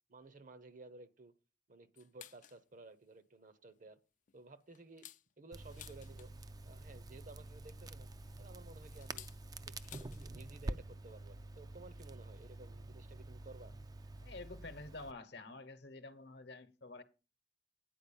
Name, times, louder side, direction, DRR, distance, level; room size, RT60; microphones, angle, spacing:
voice 1, 0.1-1.3 1.7-4.0 4.3-5.1 5.4-6.3 6.6-8.1 8.4-9.3 9.7-13.7, right 3 dB, 45° right, 0.8 m, -55 dB
sound 1, 2.0-2.6 3.1-3.2 3.6-3.8 4.3-6.6 7.7-10.3 10.6-10.7 11.0-11.3 12.2-12.3 13.2-13.3 14.2-14.3 14.7-14.8 14.9-15.1, left 12 dB, 45° left, 0.4 m, -57 dB
Crackle, 5.5-15.1, right 2 dB, 20° right, 0.4 m, -48 dB
voice 2, 14.2-17.0, left 2 dB, 65° left, 1.0 m, -49 dB
9.3 x 4.7 x 7.0 m
head